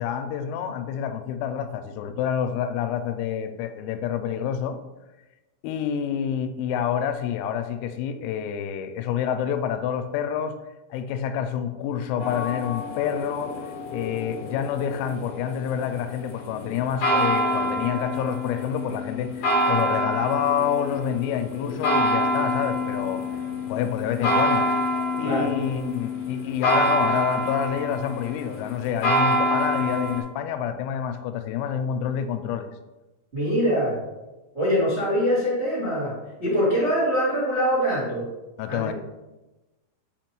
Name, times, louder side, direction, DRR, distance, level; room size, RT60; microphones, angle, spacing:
voice 1, 0.0-4.8 5.6-10.5 10.9-13.5 13.9-23.2 23.7-24.7 25.2-32.7 38.6-38.9, left 8 dB, 90° left, 8 dB, 3.3 m, -28 dB
sound 1, 12.2-30.2, equal, 55° left, 2.3 m, -27 dB
voice 2, 33.3-33.9 34.5-36.1 36.4-38.2 38.7-38.9, equal, 90° right, -9 dB, 0.6 m, -23 dB
8.3 x 5.2 x 3.0 m, 1.1 s
omnidirectional pair, 6.0 m